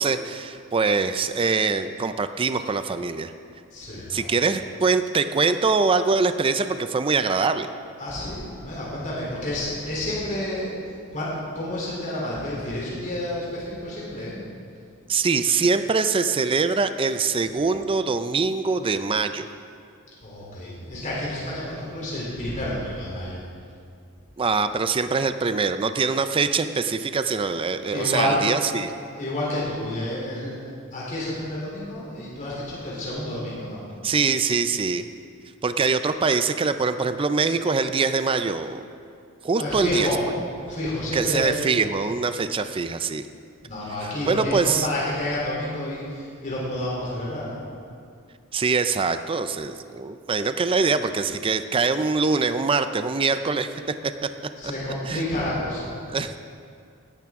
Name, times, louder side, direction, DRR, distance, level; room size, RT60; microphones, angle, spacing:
voice 1, 0.0-3.3 4.1-7.7 15.1-19.4 24.4-28.9 34.0-35.0 35.6-38.8 39.4-40.1 41.1-43.2 44.3-44.9 48.5-53.8 55.1-55.2 56.1-56.4, right 4 dB, 25° right, 10 dB, 0.4 m, -23 dB
voice 2, 3.7-4.4 8.0-10.7 11.1-14.4 17.4-17.7 20.2-23.4 27.9-28.5 29.1-33.8 39.6-40.2 40.7-41.8 43.6-47.6 54.6-56.0, left 1 dB, 35° left, -6 dB, 3.3 m, -29 dB
17.5 x 12.0 x 3.6 m, 2.3 s
head